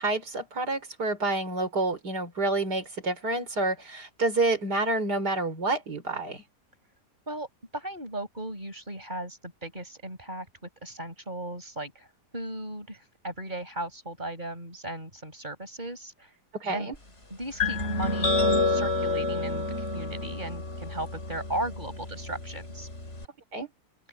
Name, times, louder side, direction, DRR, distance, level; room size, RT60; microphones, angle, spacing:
voice 1, 0.0-6.4 16.5-16.9 23.5-23.7, right 2 dB, 70° right, 4.8 m, -28 dB
voice 2, 7.7-12.1 12.3-16.3 16.7-16.9 17.3-18.4 18.7-22.9, right 1 dB, 25° right, 7.0 m, -36 dB
sound 1, 17.6-23.3, left 3 dB, 40° left, 4.3 m, -29 dB
open air
omnidirectional pair, 1.8 m